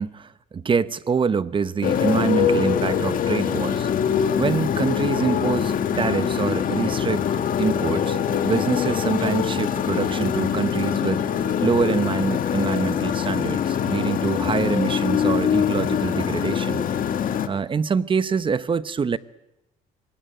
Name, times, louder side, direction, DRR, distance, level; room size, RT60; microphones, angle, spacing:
voice 1, 0.0-3.9 4.4-7.3 7.6-8.2 8.4-16.8 17.5-19.2, right 5 dB, 30° right, 1.0 m, -25 dB
Motorcycle, 1.8-17.5, left 8 dB, 55° left, 2.2 m, -23 dB
26.0 x 22.0 x 9.3 m
cardioid pair, 110°, 17 cm